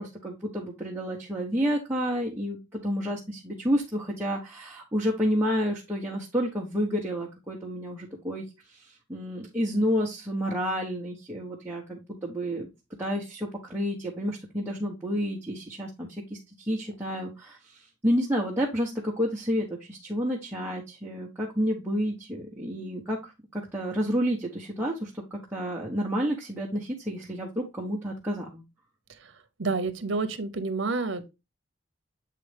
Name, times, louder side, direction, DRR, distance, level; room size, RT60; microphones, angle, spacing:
voice 1, 0.0-8.4 8.7-12.7 13.0-16.4 16.7-28.6, equal, 10° right, 1.1 m, -30 dB
voice 2, 29.6-31.3, right 3 dB, 85° right, 0.8 m, -29 dB
7.6 x 4.0 x 3.4 m
head